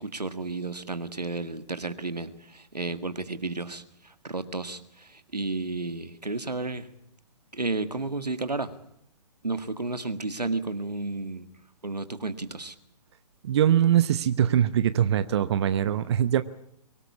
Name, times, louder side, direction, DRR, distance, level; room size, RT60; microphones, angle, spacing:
voice 1, 0.0-6.9 7.5-8.7 9.4-11.5 11.8-12.7, right 3 dB, 90° right, 11 dB, 1.8 m, -32 dB
voice 2, 13.4-16.4, right 10 dB, 45° right, 13 dB, 0.9 m, -22 dB
24.0 x 18.5 x 8.5 m, 0.73 s
figure-of-eight pair, 130°, 20 cm